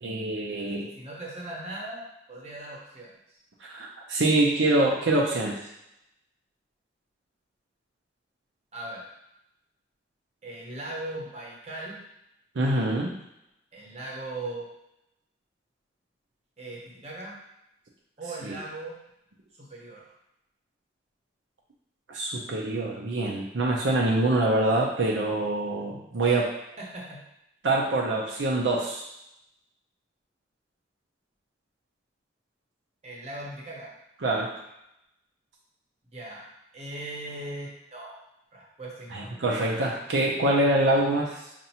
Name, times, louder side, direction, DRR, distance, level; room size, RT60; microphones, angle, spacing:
voice 1, 0.0-0.9 3.6-5.6 12.6-13.1 18.4-18.6 22.1-26.5 27.6-29.1 34.2-34.5 39.1-41.4, right 2 dB, 75° right, -2 dB, 0.6 m, -25 dB
voice 2, 0.8-3.1 8.7-9.0 10.4-12.0 13.7-14.7 16.6-17.4 18.2-18.9 19.6-20.1 26.8-27.2 33.0-33.9 36.1-36.4 36.7-38.2 38.5-39.4, right 2 dB, 35° right, -4 dB, 0.9 m, -39 dB
5.4 x 2.5 x 2.8 m, 0.83 s
head